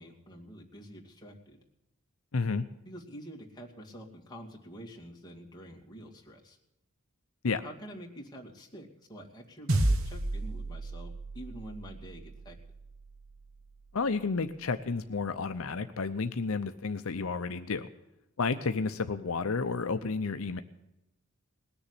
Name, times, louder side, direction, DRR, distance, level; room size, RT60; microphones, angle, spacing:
voice 1, 0.0-1.6 2.9-6.6 7.6-12.6, equal, 20° left, -1 dB, 2.4 m, -47 dB
voice 2, 2.3-2.7 7.4-7.6 13.9-17.9 18.4-20.6, left 4 dB, 75° left, 9 dB, 0.7 m, -31 dB
sound 1, 9.7-14.3, right 1 dB, 70° right, 1.3 m, -33 dB
19.5 x 7.0 x 9.7 m, 0.90 s
head